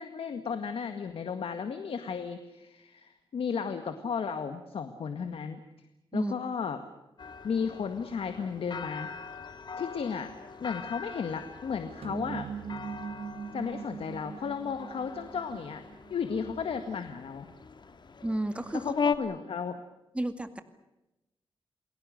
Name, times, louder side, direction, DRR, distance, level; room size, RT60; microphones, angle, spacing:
voice 1, 0.0-5.6 6.1-6.8 7.4-9.1 9.8-10.3 10.6-12.5 13.5-15.8 16.1-17.5 18.7-19.8, left 6 dB, 85° left, 8 dB, 1.9 m, -34 dB
sound 1, 7.2-19.2, left 6 dB, 55° left, 1.9 m, -39 dB
sound 2, 12.0-16.6, right 6 dB, 85° right, 1.5 m, -41 dB
voice 2, 18.2-18.9 20.1-20.6, right 1 dB, 10° right, 9 dB, 2.2 m, -32 dB
29.5 x 21.5 x 6.6 m, 0.95 s
wide cardioid pair, 105°, 9 cm